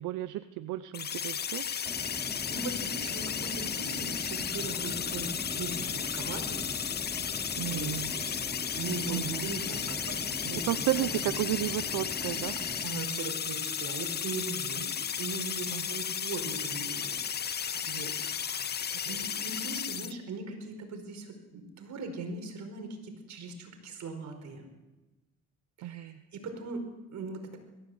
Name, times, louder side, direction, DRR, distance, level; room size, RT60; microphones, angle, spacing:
voice 1, 0.0-1.6 7.6-8.1 9.1-9.5 10.7-12.5 15.7-15.8 25.8-26.2, right 15 dB, 90° right, 13 dB, 0.7 m, -32 dB
sound 1, 0.9-20.1, left 7 dB, 35° left, 0.6 m, -34 dB
voice 2, 1.6-2.1 2.5-6.7 7.7-8.3 8.7-11.4 12.8-14.9 15.2-24.7 25.8-27.6, right 3 dB, 65° right, 5 dB, 4.8 m, -40 dB
sound 2, 1.8-12.9, equal, 5° left, 3.1 m, -42 dB
21.5 x 15.0 x 8.0 m, 1.1 s
cardioid pair, 90°, 30 cm